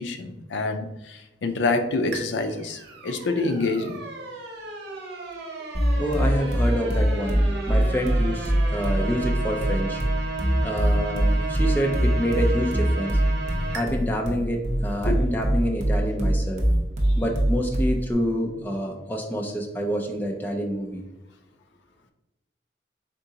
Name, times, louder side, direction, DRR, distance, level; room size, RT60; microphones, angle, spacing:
voice 1, 0.0-4.0 15.1-15.2 17.0-17.2, left 3 dB, 80° left, 8 dB, 0.5 m, -27 dB
sound 1, 2.1-13.8, right 3 dB, 70° right, 0.8 m, -34 dB
sound 2, 5.7-18.1, equal, 40° right, 0.7 m, -23 dB
voice 2, 6.0-10.0 10.6-13.2 13.7-16.6 17.2-21.0, equal, 10° left, 1 dB, 0.5 m, -27 dB
3.7 x 3.7 x 2.8 m, 0.98 s
head